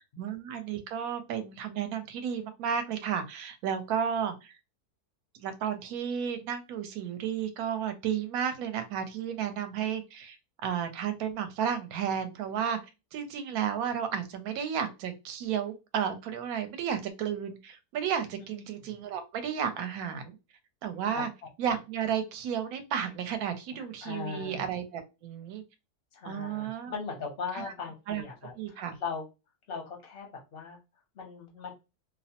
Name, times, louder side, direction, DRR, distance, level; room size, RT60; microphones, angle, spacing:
voice 1, 0.2-4.5 5.4-10.4 10.6-12.8 13.1-20.4 20.8-21.3 21.6-25.6 26.2-26.9 27.5-27.6 28.1-28.2 28.6-29.0, right 8 dB, 70° right, 9 dB, 1.0 m, -32 dB
voice 2, 24.0-24.6 26.1-29.2 29.7-30.8 31.1-31.7, left 5 dB, 55° left, 1 dB, 0.6 m, -39 dB
2.7 x 2.0 x 2.8 m, 0.27 s
omnidirectional pair, 1.7 m